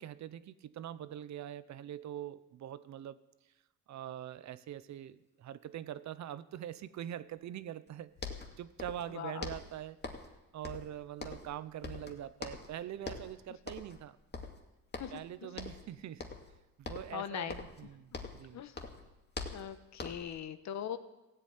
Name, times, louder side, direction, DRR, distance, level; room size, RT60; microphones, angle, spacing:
voice 1, 0.0-3.2 3.9-8.1 8.6-10.0 10.5-14.2 15.1-16.2 16.8-18.6, right 11 dB, 65° right, 15 dB, 0.8 m, -43 dB
sound 1, 7.9-8.0 8.2-9.1 9.4-10.4 10.6-11.6 11.8-12.7 13.0-13.3 13.7-14.0 14.3-15.3 15.6-15.9 16.2-16.5 16.8-18.5 18.7-20.4, left 4 dB, 35° left, 2.2 m, -43 dB
voice 2, 9.1-9.5 15.0-15.6 17.1-17.5 18.5-18.8 19.5-21.0, left 9 dB, 65° left, 11 dB, 1.2 m, -41 dB
16.0 x 8.2 x 9.1 m, 1.0 s
cardioid pair, 90°, 30 cm